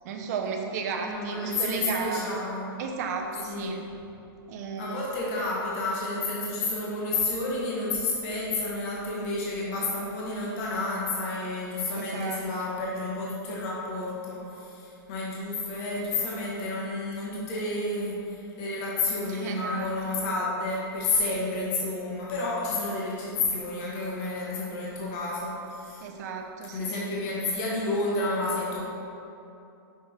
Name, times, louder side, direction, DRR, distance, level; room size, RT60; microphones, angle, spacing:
voice 1, 0.0-2.3 2.8-3.8 4.5-5.1 12.0-12.4 19.3-19.9 21.3-21.4 26.0-27.2, right 5 dB, 45° right, 3 dB, 0.7 m, -34 dB
voice 2, 1.0-2.8 3.5-3.9 4.8-26.0 26.7-28.9, left 2 dB, 35° left, -5 dB, 1.4 m, -30 dB
6.1 x 4.6 x 4.4 m, 2.8 s
hypercardioid pair, 160°, 13 cm